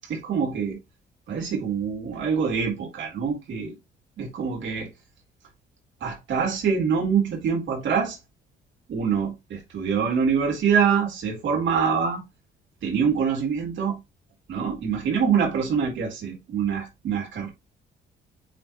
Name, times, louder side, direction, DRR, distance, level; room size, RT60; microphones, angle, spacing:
voice 1, 0.1-0.8 1.3-3.7 4.2-4.9 6.0-8.2 8.9-12.2 12.8-14.0 14.5-17.5, right 6 dB, 70° right, 3.9 m, -25 dB
9.0 x 4.1 x 3.2 m
cardioid pair, 90°, 20 cm